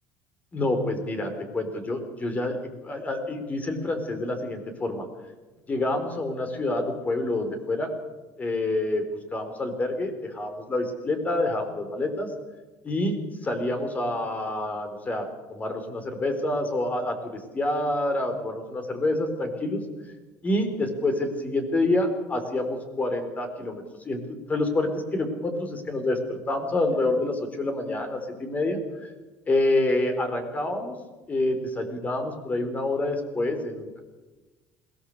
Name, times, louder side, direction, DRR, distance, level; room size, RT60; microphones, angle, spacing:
voice 1, 0.5-2.6 2.8-5.1 5.7-7.9 8.4-9.0 9.3-12.3 12.8-19.8 20.4-28.8 29.5-31.0 31.3-34.0, left 2 dB, 25° left, 6 dB, 4.1 m, -27 dB
21.5 x 18.0 x 6.9 m, 1.2 s
cardioid pair, 120°, 6 cm